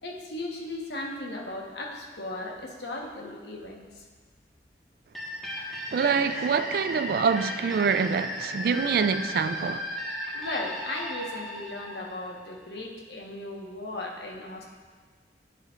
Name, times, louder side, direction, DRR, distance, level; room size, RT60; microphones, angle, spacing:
voice 1, 0.0-4.0 6.3-6.4 10.3-14.6, left 2 dB, 70° left, 1.2 m, -36 dB
sound 1, 5.1-12.7, left 1 dB, ahead, 1.4 m, -36 dB
voice 2, 5.9-9.9, right 5 dB, 55° right, 0.3 m, -25 dB
11.5 x 7.5 x 2.5 m
head